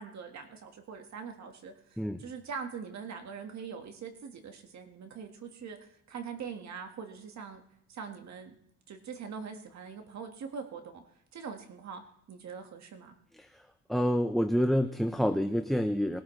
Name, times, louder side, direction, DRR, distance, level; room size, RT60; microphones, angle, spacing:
voice 1, 0.0-7.6 7.9-8.6 8.9-11.0 11.3-12.0 12.3-13.1, right 6 dB, 65° right, 5 dB, 1.7 m, -43 dB
voice 2, 13.9-16.2, equal, ahead, 6 dB, 0.7 m, -28 dB
21.0 x 12.5 x 3.3 m, 0.72 s
cardioid pair, 90°, 30 cm